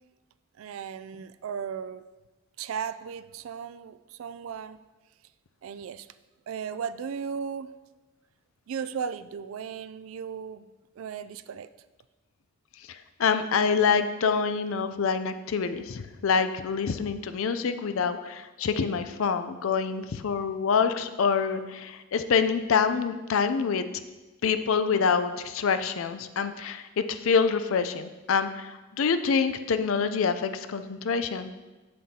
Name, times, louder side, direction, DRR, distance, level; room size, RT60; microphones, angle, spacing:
voice 1, 0.6-2.1 2.6-4.8 5.6-6.1 6.5-7.7 8.7-10.7 11.0-11.7, right 7 dB, 75° right, 14 dB, 0.3 m, -36 dB
voice 2, 12.9-23.9 24.4-31.5, left 5 dB, 70° left, 10 dB, 0.4 m, -26 dB
7.7 x 7.5 x 2.8 m, 1.1 s
head